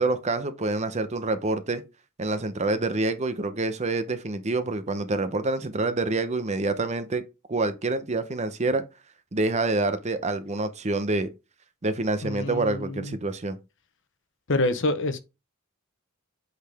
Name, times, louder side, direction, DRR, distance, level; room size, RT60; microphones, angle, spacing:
voice 1, 0.0-1.8 2.2-7.2 7.5-8.8 9.3-11.3 11.8-13.6, right 2 dB, 30° right, 0.7 m, -27 dB
voice 2, 12.2-13.1 14.5-15.2, left 2 dB, 60° left, 0.9 m, -27 dB
8.4 x 4.1 x 3.5 m
head